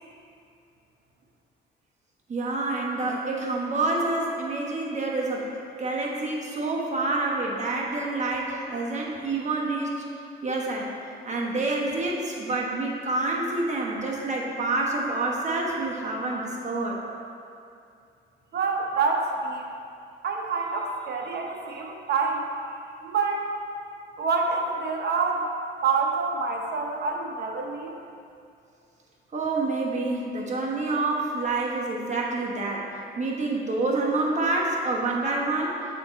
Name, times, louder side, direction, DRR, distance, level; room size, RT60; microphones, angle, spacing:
voice 1, 2.3-10.0 10.4-10.9 11.2-17.0 29.3-32.9 33.2-35.8, right 2 dB, 35° right, -2 dB, 1.1 m, -27 dB
voice 2, 18.5-19.6 20.2-22.5 23.0-23.5 24.2-25.5 25.8-27.9, right 4 dB, 55° right, 1 dB, 0.9 m, -27 dB
7.0 x 3.7 x 4.1 m, 2.4 s
cardioid pair, 90°, 20 cm